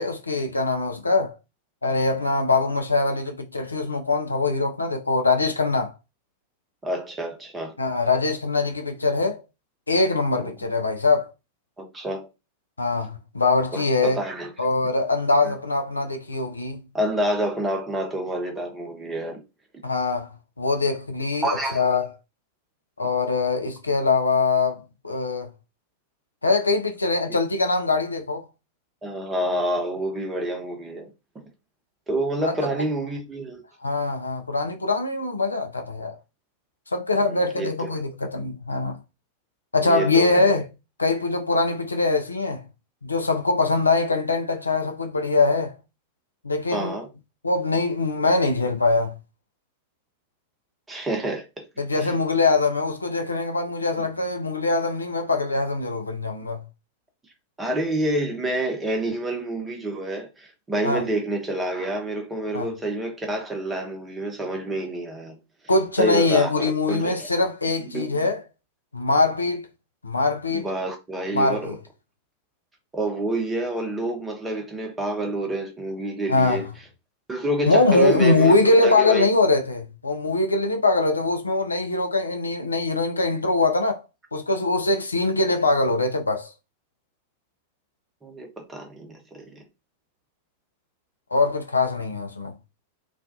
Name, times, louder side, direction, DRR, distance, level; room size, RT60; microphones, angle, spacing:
voice 1, 0.0-1.4 1.8-5.9 7.8-9.4 9.9-11.3 12.8-14.2 14.6-16.8 19.8-21.5 21.7-22.1 23.0-25.5 26.4-28.5 32.4-32.5 33.8-36.2 36.9-39.0 39.7-40.6 41.0-42.6 43.0-45.8 46.4-47.0 47.4-49.2 51.8-56.6 60.8-61.0 62.5-62.7 65.7-68.4 68.9-69.7 70.0-70.7 71.3-71.8 76.3-76.6 77.7-84.0 84.3-86.5 91.3-92.5, left 3 dB, 80° left, 0.4 m, -22 dB
voice 2, 6.8-7.7 10.4-10.5 11.8-12.3 13.7-14.5 15.4-15.5 16.9-19.4 21.4-21.8 29.0-31.1 32.1-33.6 37.2-37.9 39.8-40.5 46.7-47.1 50.9-51.7 52.0-52.2 54.0-54.1 57.6-65.4 66.0-67.3 67.9-68.2 70.5-71.8 72.9-76.7 77.3-79.3 88.2-89.5, right 1 dB, 15° right, 0.8 m, -28 dB
2.4 x 2.2 x 2.5 m
figure-of-eight pair, 90°, 0 cm